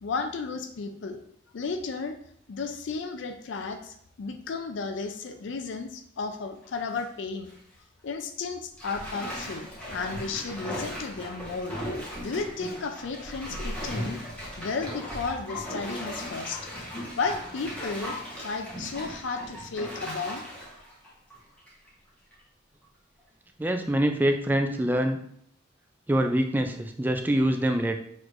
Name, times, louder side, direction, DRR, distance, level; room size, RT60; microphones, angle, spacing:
voice 1, 0.0-1.2 1.5-2.1 2.5-7.5 8.0-11.8 12.2-14.2 14.6-16.7 17.2-20.5, left 4 dB, 70° left, 6 dB, 0.4 m, -33 dB
Bathtub (filling or washing), 6.6-7.0 7.5-7.6 8.8-21.9 22.3-22.4, equal, 5° left, 1.0 m, -37 dB
voice 2, 23.6-25.2 26.1-28.0, right 1 dB, 10° right, 5 dB, 0.3 m, -25 dB
6.2 x 3.1 x 2.5 m, 0.67 s
head